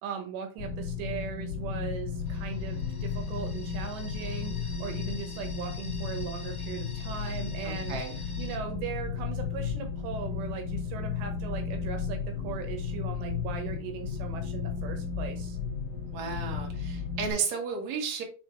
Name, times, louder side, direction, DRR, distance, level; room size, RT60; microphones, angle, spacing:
voice 1, 0.0-12.2 12.4-15.6, right 7 dB, 80° right, 5 dB, 3.3 m, -39 dB
sound 1, 0.6-17.3, left 6 dB, 65° left, 1.0 m, -34 dB
sound 2, 2.2-8.6, left 3 dB, 35° left, 1.4 m, -48 dB
voice 2, 7.6-8.1 16.1-18.2, right 5 dB, 50° right, 1 dB, 2.6 m, -33 dB
6.5 x 4.8 x 4.6 m, 0.37 s
omnidirectional pair, 5.1 m